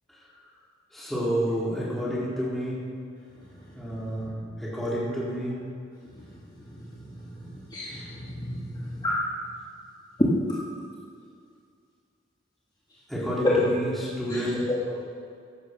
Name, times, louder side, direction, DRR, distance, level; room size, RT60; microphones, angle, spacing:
voice 1, 0.9-2.8 3.7-4.3 4.6-5.6 13.1-14.6, equal, ahead, -8 dB, 4.1 m, -29 dB
voice 2, 7.7-9.1 13.4-13.6 14.3-15.0, left 2 dB, 25° left, -7 dB, 1.9 m, -29 dB
14.5 x 12.0 x 5.6 m, 2.3 s
head